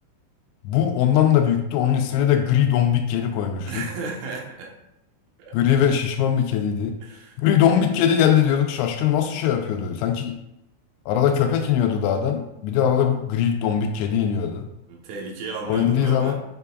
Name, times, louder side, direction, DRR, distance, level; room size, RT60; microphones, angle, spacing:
voice 1, 0.6-3.9 5.5-7.0 7.4-10.4 11.1-14.7 15.7-16.3, left 9 dB, 85° left, 5 dB, 2.8 m, -21 dB
voice 2, 3.7-4.7 5.4-5.5 7.0-7.4 14.9-16.3, right 4 dB, 80° right, -1 dB, 3.6 m, -34 dB
7.6 x 6.7 x 2.4 m, 0.86 s
omnidirectional pair, 5.5 m